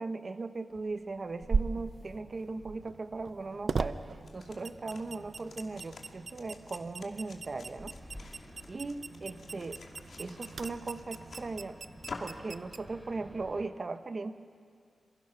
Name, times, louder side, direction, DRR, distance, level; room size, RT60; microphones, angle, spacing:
voice 1, 0.0-4.0 4.3-8.0 8.7-9.8 10.2-11.8 12.2-14.3, right 3 dB, 45° right, 9 dB, 1.1 m, -38 dB
sound 1, 0.7-13.6, left 1 dB, 5° left, 3.7 m, -57 dB
sound 2, 1.4-13.7, right 4 dB, 65° right, 0.7 m, -39 dB
sound 3, 4.1-12.5, left 3 dB, 65° left, 2.6 m, -50 dB
27.0 x 23.0 x 6.0 m, 2.1 s
wide cardioid pair, 90°, 0 cm